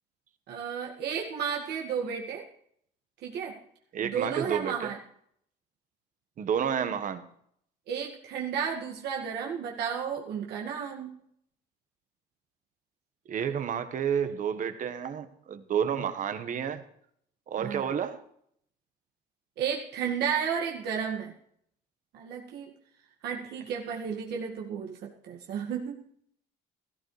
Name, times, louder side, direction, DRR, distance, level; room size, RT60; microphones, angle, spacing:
voice 1, 0.5-2.4 3.2-3.6 4.0-5.0 7.9-11.2 17.6-17.9 19.6-21.3 22.1-22.7 23.2-26.0, right 7 dB, 80° right, 2.1 m, -33 dB
voice 2, 3.9-4.9 6.4-7.2 13.3-16.8 17.5-18.2, right 8 dB, 50° right, 1.5 m, -30 dB
16.5 x 14.0 x 3.4 m
cardioid pair, 110°, 17 cm